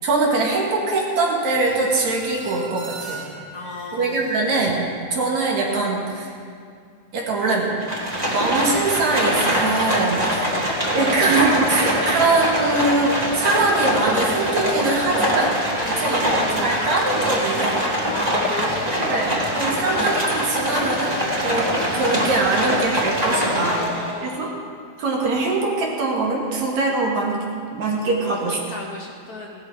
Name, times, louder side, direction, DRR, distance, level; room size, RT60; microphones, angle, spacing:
voice 1, 0.0-3.2 3.9-6.3 7.1-7.9 8.3-10.3 10.9-15.5 16.0-17.7 19.1-21.7 21.9-23.8 24.2-24.5 25.0-27.4 27.7-28.6, right 3 dB, 70° right, -2 dB, 3.3 m, -22 dB
sound 1, 1.5-5.1, right 1 dB, 35° right, 2.6 m, -39 dB
voice 2, 3.5-4.3 10.3-10.5 12.0-12.2 15.8-16.8 18.0-19.6 23.2-24.6 28.3-29.6, left 2 dB, 85° left, -1 dB, 0.8 m, -33 dB
Livestock farm animals working animals, 7.8-24.2, equal, 15° right, 1.8 m, -23 dB
17.0 x 12.5 x 5.0 m, 2.2 s
omnidirectional pair, 3.3 m